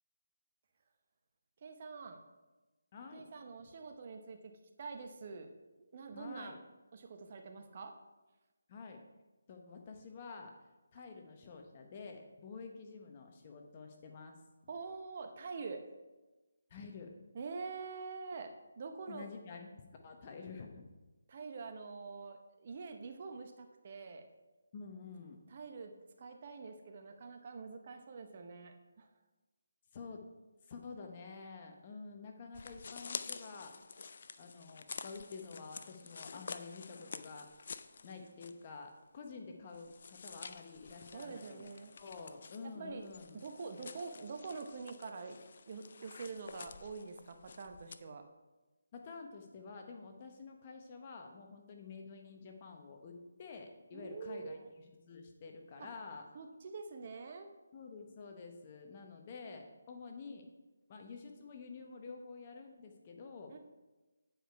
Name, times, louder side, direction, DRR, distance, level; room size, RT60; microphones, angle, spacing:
voice 1, 1.6-2.2 3.1-4.5 4.8-5.5 5.8-6.5 6.9-7.9 14.7-15.8 17.3-18.5 18.8-19.3 21.3-24.3 25.5-29.1 41.1-42.0 42.6-45.4 45.7-48.2 53.9-54.7 55.8-55.9 56.3-57.5 63.5-63.6, right 4 dB, 40° right, 5 dB, 0.8 m, -46 dB
voice 2, 2.9-3.2 6.1-6.6 8.7-9.0 9.5-10.5 10.9-14.4 16.7-17.1 19.1-20.9 24.7-25.4 29.9-30.3 30.7-33.7 34.4-37.5 38.0-41.7 42.0-43.4 48.9-56.3 57.7-60.5 60.9-63.6, left 4 dB, 30° left, 3 dB, 1.0 m, -49 dB
sound 1, 32.5-38.7 39.0-39.1 39.7-48.0, left 5 dB, 50° left, 0.4 m, -49 dB
9.0 x 4.9 x 4.6 m, 1.1 s
figure-of-eight pair, 155°, 0 cm